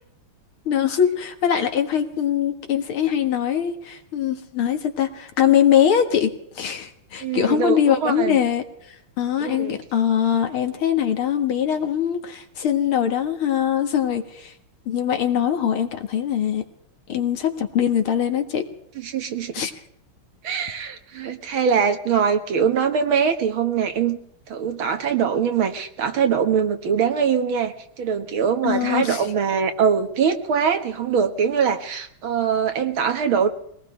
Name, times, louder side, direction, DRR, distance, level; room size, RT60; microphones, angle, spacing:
voice 1, 0.7-8.6 9.2-14.5 14.9-16.6 17.1-18.7 19.5-19.7 28.6-29.2, left 9 dB, 75° left, 7 dB, 2.4 m, -22 dB
voice 2, 7.2-8.4 9.4-9.8 19.0-19.7 20.4-24.2 24.5-33.5, right 7 dB, 70° right, 6 dB, 2.3 m, -22 dB
23.5 x 18.5 x 3.3 m, 0.70 s
omnidirectional pair, 2.4 m